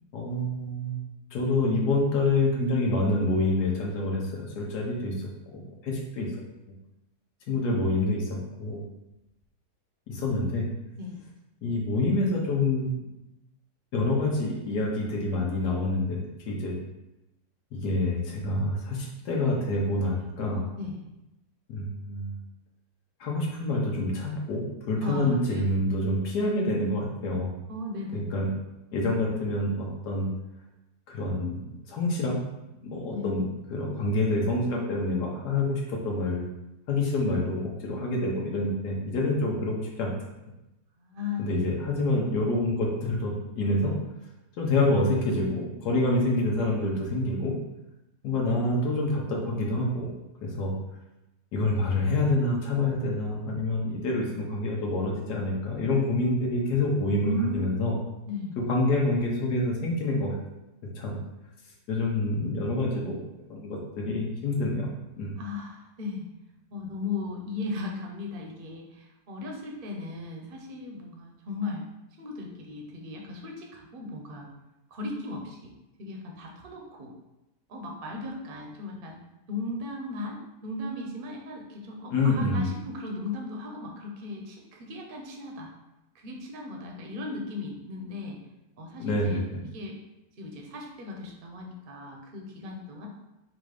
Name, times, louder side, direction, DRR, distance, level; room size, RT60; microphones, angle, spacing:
voice 1, 0.1-1.0 1.3-6.3 7.5-8.9 10.1-10.7 11.6-12.9 13.9-16.2 16.5-16.7 17.7-20.6 21.7-22.3 23.2-27.5 28.1-28.5 28.9-30.3 31.1-31.6 31.9-32.4 32.8-33.4 33.7-36.4 36.9-40.1 41.4-44.0 44.6-47.5 48.2-50.1 50.4-50.7 51.5-58.0 58.7-60.3 61.0-61.2 61.9-63.2 63.5-64.9 65.2-65.4 82.1-82.7 89.0-89.6, left 2 dB, 90° left, -2 dB, 1.4 m, -27 dB
voice 2, 25.0-25.7 27.7-28.4 33.1-33.3 41.0-41.7 57.2-57.9 58.3-58.6 65.4-66.2 66.7-71.8 72.2-74.5 74.9-75.7 76.0-77.1 77.7-79.2 79.5-85.7 86.1-88.4 88.8-89.4 89.7-89.9 90.4-93.1, left 2 dB, 45° right, 1 dB, 0.8 m, -36 dB
4.1 x 2.6 x 4.8 m, 0.94 s
omnidirectional pair, 1.7 m